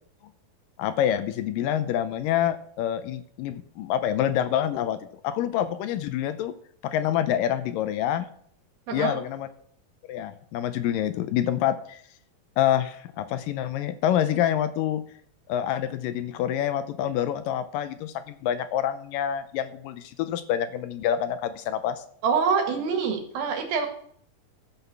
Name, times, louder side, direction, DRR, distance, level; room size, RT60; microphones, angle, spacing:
voice 1, 0.8-5.0 5.2-6.5 6.8-8.3 8.9-9.5 10.1-12.0 12.6-15.0 15.5-22.0, left 10 dB, 80° left, 12 dB, 2.2 m, -27 dB
voice 2, 8.9-9.2 22.2-23.9, right 5 dB, 80° right, 5 dB, 3.5 m, -25 dB
13.0 x 5.6 x 6.8 m, 0.62 s
omnidirectional pair, 4.2 m